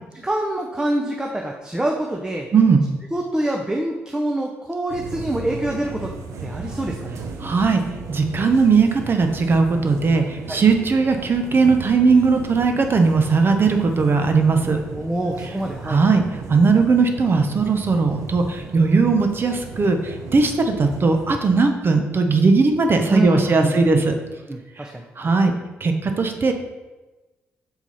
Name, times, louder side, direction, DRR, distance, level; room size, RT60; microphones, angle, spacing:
voice 1, 0.2-2.5 3.1-6.1 6.4-7.2 10.5-10.6 14.9-16.0 23.1-24.0 24.5-25.3, right 1 dB, 15° right, 1 dB, 0.7 m, -26 dB
voice 2, 2.5-2.9 7.4-7.8 8.1-14.8 15.9-16.2 16.5-24.1 25.2-25.6 25.8-26.5, right 4 dB, 45° right, 5 dB, 0.8 m, -18 dB
sound 1, 4.9-21.5, right 4 dB, 70° right, 0.7 m, -36 dB
5.8 x 4.4 x 4.2 m, 1.2 s
supercardioid pair, 55°, 5 cm